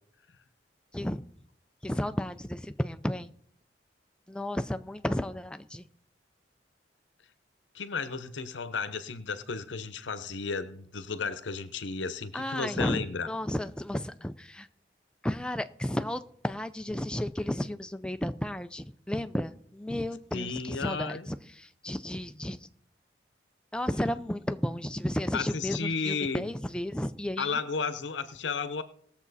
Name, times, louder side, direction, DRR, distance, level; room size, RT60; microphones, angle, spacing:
voice 1, 1.8-3.3 4.3-5.9 12.3-14.7 15.2-22.7 23.7-27.6, left 1 dB, 5° left, 10 dB, 0.4 m, -33 dB
voice 2, 7.7-13.3 20.3-21.3 25.3-26.5 27.4-28.8, left 5 dB, 90° left, 12 dB, 0.8 m, -33 dB
19.0 x 7.2 x 4.1 m, 0.64 s
head